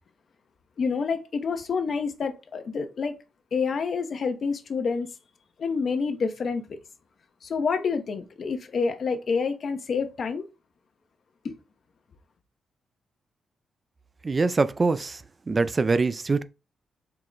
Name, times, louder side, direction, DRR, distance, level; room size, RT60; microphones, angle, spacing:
voice 1, 0.8-3.2 3.5-5.1 5.6-6.8 7.4-10.4 11.4-11.5, left 5 dB, 60° left, 0.7 m, -28 dB
voice 2, 14.2-16.4, right 3 dB, 40° right, 0.3 m, -24 dB
4.6 x 2.1 x 3.8 m
supercardioid pair, 55°, 0 cm